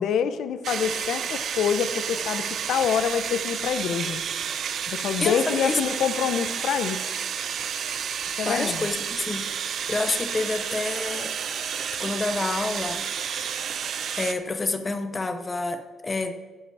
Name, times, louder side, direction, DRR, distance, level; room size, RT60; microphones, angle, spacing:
voice 1, 0.0-4.2 4.9-7.0 8.4-8.9, left 8 dB, 75° left, 11 dB, 0.7 m, -26 dB
sound 1, 0.6-14.3, right 8 dB, 60° right, 0.5 m, -31 dB
voice 2, 5.2-5.8 8.4-11.3 11.9-13.1 14.1-16.3, left 3 dB, 25° left, 9 dB, 0.8 m, -28 dB
14.5 x 5.1 x 4.8 m, 1.3 s
cardioid pair, 90°, 0 cm